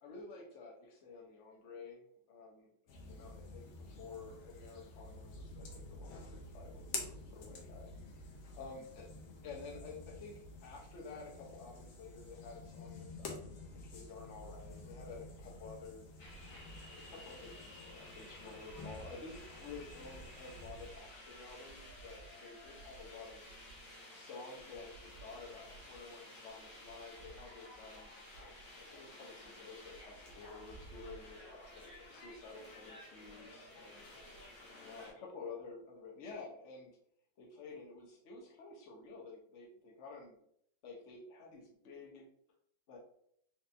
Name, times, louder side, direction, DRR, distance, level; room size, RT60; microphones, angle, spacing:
voice 1, 0.0-7.9 8.3-9.1 9.4-16.1 16.8-23.4 24.1-34.1 34.8-37.0 37.4-40.3 40.8-42.3 42.9-43.0, left 4 dB, 50° left, -1 dB, 1.0 m, -51 dB
sound 1, 2.9-20.9, left 3 dB, 90° left, 1.6 m, -50 dB
sound 2, 16.2-35.1, equal, 65° left, 1.7 m, -53 dB
4.1 x 3.3 x 2.6 m, 0.69 s
omnidirectional pair, 2.1 m